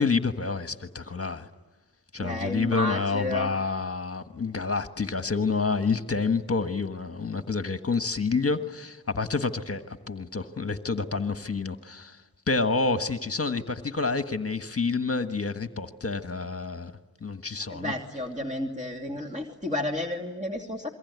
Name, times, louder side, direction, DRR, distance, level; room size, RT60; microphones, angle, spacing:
voice 1, 0.0-1.5 2.1-12.2 12.5-16.9 17.2-17.9, left 4 dB, 35° left, 9 dB, 1.5 m, -28 dB
voice 2, 2.2-3.5 17.7-20.9, left 1 dB, 20° right, 1 dB, 2.8 m, -31 dB
27.0 x 23.0 x 9.5 m, 1.2 s
wide cardioid pair, 70°, 39 cm